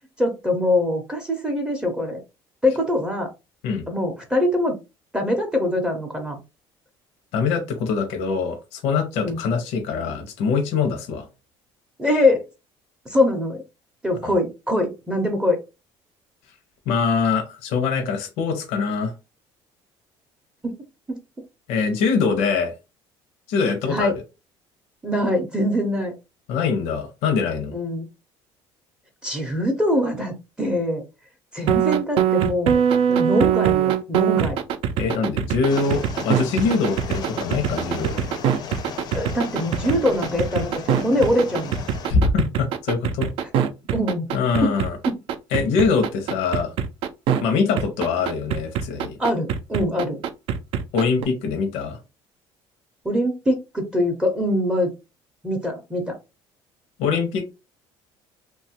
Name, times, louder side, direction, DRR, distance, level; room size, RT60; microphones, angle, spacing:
voice 1, 0.2-2.2 2.6-3.3 3.9-4.8 5.1-6.4 9.2-9.4 12.0-12.4 13.1-13.6 14.0-15.6 20.6-20.8 21.1-21.2 23.9-24.1 25.0-26.1 27.7-28.1 29.2-31.0 31.5-32.8 33.1-34.6 39.1-41.8 43.9-44.3 44.6-44.7 45.1-45.2 49.2-50.2 53.0-54.9 55.4-56.2, left 1 dB, 10° right, 2 dB, 0.5 m, -23 dB
voice 2, 7.3-11.3 14.2-14.3 16.9-19.1 21.7-22.7 23.5-24.1 26.5-27.7 35.0-38.3 42.1-43.3 44.3-45.0 45.5-46.7 47.4-49.2 50.9-52.0 57.0-57.5, left 5 dB, 80° left, 5 dB, 0.7 m, -23 dB
sound 1, 31.7-47.4 47.8-51.2, right 8 dB, 60° right, 0.4 m, -22 dB
sound 2, 35.7-42.1, left 6 dB, 40° left, 0.5 m, -35 dB
2.9 x 2.3 x 2.8 m, 0.26 s
cardioid pair, 145°, 10 cm